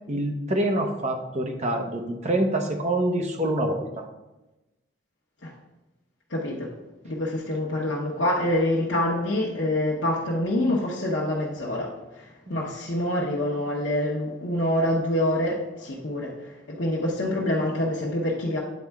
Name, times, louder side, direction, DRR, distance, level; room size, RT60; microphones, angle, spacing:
voice 1, 0.1-4.0 12.5-12.6, right 1 dB, 35° right, 3 dB, 0.8 m, -26 dB
voice 2, 6.3-6.7 7.0-18.6, left 1 dB, 75° left, -5 dB, 0.9 m, -26 dB
9.4 x 4.3 x 3.5 m, 1.0 s
head